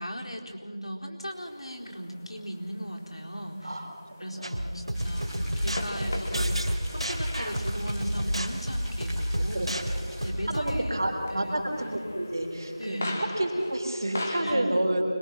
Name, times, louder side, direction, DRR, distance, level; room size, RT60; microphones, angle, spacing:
voice 1, 0.0-3.8 4.2-9.8 10.2-11.0 11.3-11.6 12.8-13.2 14.4-14.7, equal, 75° left, 0 dB, 4.2 m, -37 dB
sound 1, 1.3-14.4, left 1 dB, 20° left, 1.6 m, -42 dB
voice 2, 3.6-4.5 9.5-9.7 10.5-15.0, right 1 dB, 40° right, 2 dB, 3.7 m, -29 dB
sound 2, 4.4-10.8, equal, 80° right, 3.0 m, -30 dB
sound 3, 4.9-10.3, equal, ahead, 1.7 m, -44 dB
25.5 x 22.0 x 6.1 m, 2.3 s
figure-of-eight pair, 175°, 3 cm